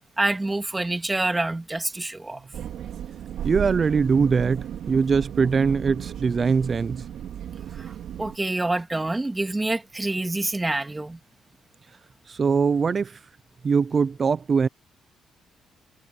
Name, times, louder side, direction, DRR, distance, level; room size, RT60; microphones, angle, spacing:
voice 1, 0.2-2.4 7.8-7.9 8.2-11.2, right 2 dB, 15° right, 2.7 m, -27 dB
sound 1, 2.5-8.4, right 10 dB, 75° right, 2.7 m, -34 dB
voice 2, 3.4-7.0 12.3-13.2 13.6-14.7, right 5 dB, 40° right, 0.6 m, -22 dB
cardioid pair, 90°, 0 cm